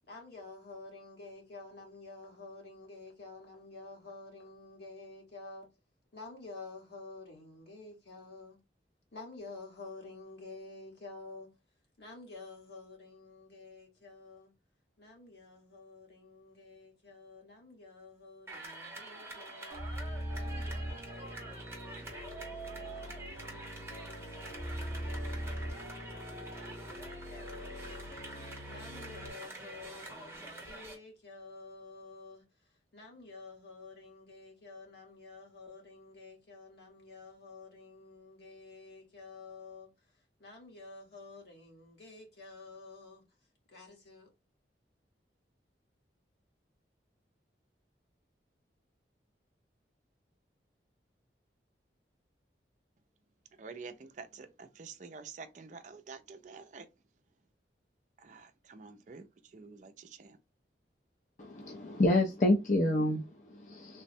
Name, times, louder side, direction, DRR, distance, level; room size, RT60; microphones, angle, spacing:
voice 1, 0.1-5.7 6.1-8.6 9.1-11.5 12.0-14.5 15.0-43.2 43.7-44.3, left 3 dB, 70° left, 1.4 m, -50 dB
sound 1, 18.5-31.0, right 2 dB, 15° right, 0.8 m, -46 dB
sound 2, 19.7-29.3, equal, 85° left, 1.1 m, -42 dB
voice 2, 53.6-56.9 58.2-60.4, right 4 dB, 45° right, 0.4 m, -48 dB
voice 3, 61.4-64.0, left 1 dB, 45° left, 0.4 m, -28 dB
3.4 x 2.1 x 2.6 m
head